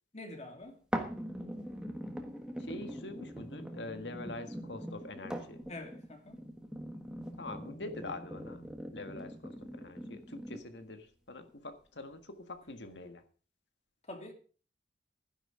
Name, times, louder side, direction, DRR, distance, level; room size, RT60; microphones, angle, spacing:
voice 1, 0.1-0.8 5.7-6.4 14.0-14.3, left 2 dB, 40° left, 2.6 m, -46 dB
sound 1, 0.9-10.9 11.5-11.6, equal, 5° right, 1.5 m, -42 dB
voice 2, 2.6-5.6 7.4-13.2, left 2 dB, 70° left, 1.7 m, -45 dB
12.5 x 10.0 x 5.0 m
head